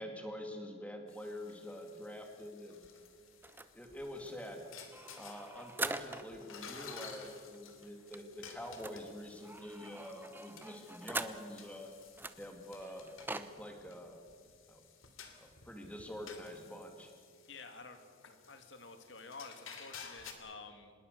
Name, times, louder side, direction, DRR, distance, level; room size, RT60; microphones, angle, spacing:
voice 1, 0.0-2.9 3.7-4.7 5.2-11.9 12.4-14.2 14.7-14.8 15.3-17.1, equal, 5° left, 3 dB, 2.6 m, -46 dB
sound 1, 1.1-20.3, left 6 dB, 80° left, 2.9 m, -54 dB
sound 2, 3.4-6.5 6.8-6.9 7.2-7.3 7.5-11.7 12.2-13.5, right 2 dB, 10° right, 0.7 m, -44 dB
voice 2, 17.5-20.9, left 4 dB, 60° left, 7 dB, 2.5 m, -51 dB
26.0 x 21.0 x 6.8 m, 2.1 s
head